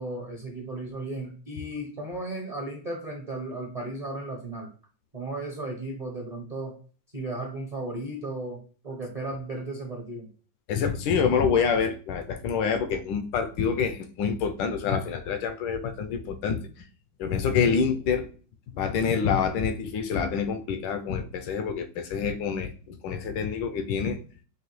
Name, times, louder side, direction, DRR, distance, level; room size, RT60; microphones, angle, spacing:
voice 1, 0.0-4.7 5.1-6.7 7.1-8.6 8.8-10.3, right 2 dB, 40° right, 0 dB, 0.5 m, -35 dB
voice 2, 10.7-16.6 17.2-18.3 18.7-24.2, left 6 dB, 85° left, 7 dB, 1.3 m, -27 dB
4.8 x 2.7 x 3.0 m, 0.39 s
omnidirectional pair, 2.0 m